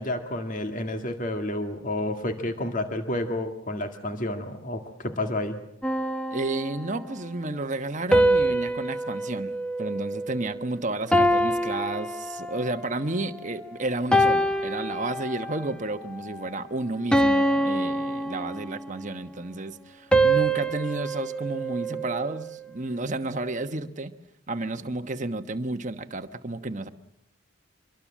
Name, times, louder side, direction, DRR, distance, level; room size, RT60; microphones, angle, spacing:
voice 1, 0.0-5.6, left 1 dB, 35° left, 6 dB, 2.0 m, -30 dB
sound 1, 5.8-7.1 8.1-10.6 11.1-12.8 13.4-13.6 14.1-15.7 16.1-16.4 17.1-19.0 20.1-22.5, right 1 dB, 5° left, 1.0 m, -25 dB
voice 2, 6.3-9.5 9.8-24.1 24.5-26.9, right 2 dB, 35° right, 8 dB, 1.1 m, -31 dB
25.0 x 23.0 x 7.4 m, 0.78 s
head